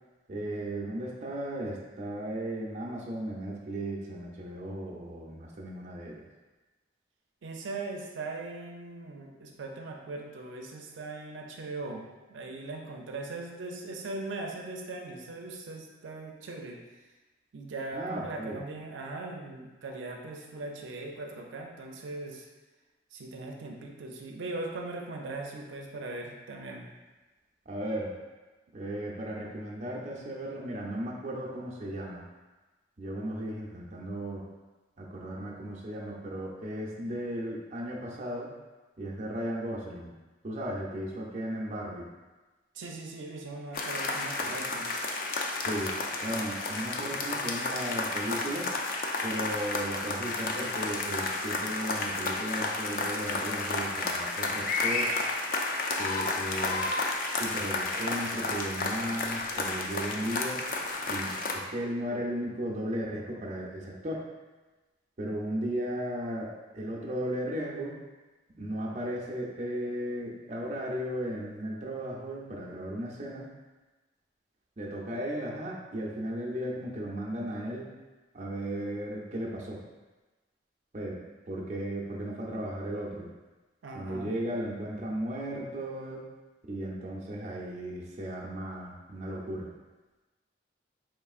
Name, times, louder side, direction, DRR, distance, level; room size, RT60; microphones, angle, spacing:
voice 1, 0.3-6.2 17.9-18.6 27.7-28.1 28.7-32.2 33.0-34.5 35.0-38.5 39.0-40.1 40.4-42.1 44.4-44.5 45.6-45.9 46.2-48.7 49.2-55.1 56.0-56.9 57.4-60.6 61.1-64.2 65.2-68.0 68.6-73.5 74.8-77.9 78.3-79.8 80.9-81.2 81.5-83.3 83.9-86.2 86.7-89.7, right 1 dB, 40° right, -3 dB, 0.5 m, -35 dB
voice 2, 7.4-16.8 17.5-22.5 23.1-26.9 42.7-44.9 83.8-84.3, right 2 dB, 85° right, 1 dB, 0.4 m, -39 dB
sound 1, 43.7-61.5, left 3 dB, 45° left, 0.4 m, -32 dB
4.5 x 3.1 x 2.4 m, 1.2 s
head